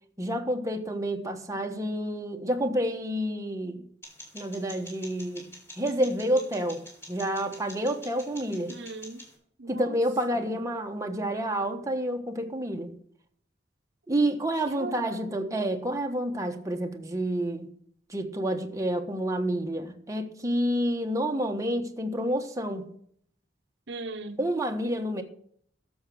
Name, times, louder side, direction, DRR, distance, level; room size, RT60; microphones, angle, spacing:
voice 1, 0.2-3.8 4.3-6.8 7.1-8.7 9.7-12.9 14.1-17.7 18.1-22.9 24.4-25.2, right 1 dB, 20° right, 1.2 m, -29 dB
sound 1, 4.0-9.3, left 1 dB, 15° left, 5.0 m, -47 dB
voice 2, 8.7-9.2 9.6-10.0 10.3-10.5 14.7-15.3 23.9-24.4, right 3 dB, 75° right, 1.0 m, -39 dB
12.0 x 7.2 x 6.4 m
head